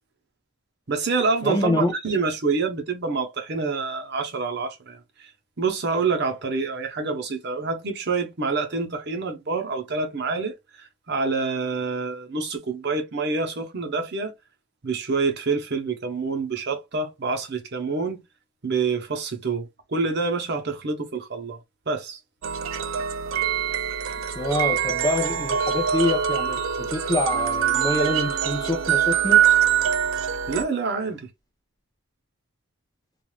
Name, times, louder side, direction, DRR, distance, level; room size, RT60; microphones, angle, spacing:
voice 1, 0.9-5.3 5.6-14.3 14.8-18.2 18.6-21.6 21.9-22.2 30.5-31.3, right 4 dB, 50° right, 0.8 m, -27 dB
voice 2, 1.4-1.9 24.4-29.4, left 1 dB, 20° left, 0.6 m, -26 dB
sound 1, 22.4-30.6, right 8 dB, 70° right, 0.4 m, -23 dB
3.1 x 2.5 x 2.3 m
head